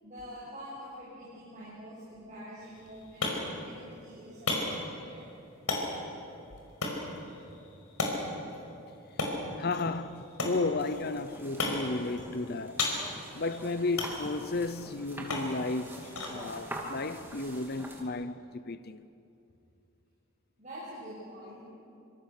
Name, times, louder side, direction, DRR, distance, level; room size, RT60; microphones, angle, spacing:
voice 1, 0.0-5.3 20.6-21.6, equal, 35° right, 7.3 m, -46 dB
sound 1, 2.6-18.2, left 2 dB, 90° left, 5.1 m, -37 dB
voice 2, 9.6-12.8 13.3-19.0, left 3 dB, 45° left, 0.7 m, -33 dB
sound 2, 10.8-18.0, right 1 dB, 10° right, 2.5 m, -45 dB
26.0 x 26.0 x 6.7 m
head